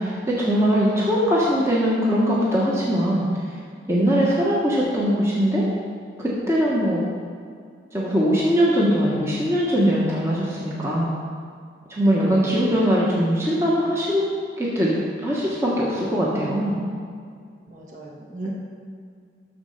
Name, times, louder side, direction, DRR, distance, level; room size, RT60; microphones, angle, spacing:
voice 1, 0.0-3.3 3.9-5.6 6.2-7.0 7.9-11.1 11.9-14.2 14.6-14.9 15.2-16.8, equal, 15° right, -6 dB, 1.2 m, -21 dB
voice 2, 10.6-11.1 12.1-12.4 17.7-18.5, right 1 dB, 45° right, -3 dB, 1.6 m, -36 dB
12.5 x 4.3 x 6.5 m, 2.2 s
head